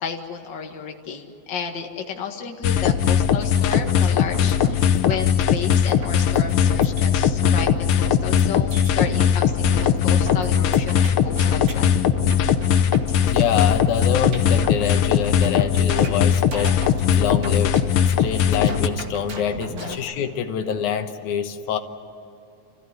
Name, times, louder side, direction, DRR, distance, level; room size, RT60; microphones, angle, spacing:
voice 1, 0.0-12.0 19.7-20.0, left 6 dB, 45° left, 3 dB, 2.1 m, -32 dB
sound 1, 2.6-18.9, left 8 dB, 70° left, 1.3 m, -19 dB
sound 2, 3.4-20.0, right 1 dB, 40° right, 2.7 m, -36 dB
voice 2, 12.9-16.8 17.2-17.8 18.2-21.8, left 8 dB, 85° left, 7 dB, 2.6 m, -26 dB
29.0 x 15.5 x 9.6 m, 2.7 s
omnidirectional pair, 3.4 m